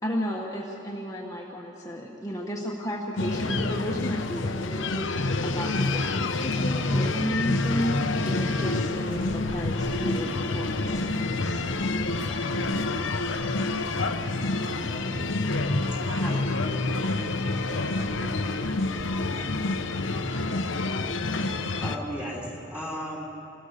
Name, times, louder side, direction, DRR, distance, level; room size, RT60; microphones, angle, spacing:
voice 1, 0.0-5.1 5.4-12.4, equal, 20° left, -2 dB, 1.4 m, -33 dB
sound 1, 3.2-22.0, left 2 dB, 85° left, 1.0 m, -27 dB
voice 2, 14.8-18.8 19.1-19.8 20.1-20.7, right 2 dB, 85° right, 2 dB, 2.0 m, -45 dB
voice 3, 21.8-23.2, equal, 10° right, -4 dB, 3.0 m, -35 dB
27.0 x 17.5 x 6.7 m, 3.0 s
head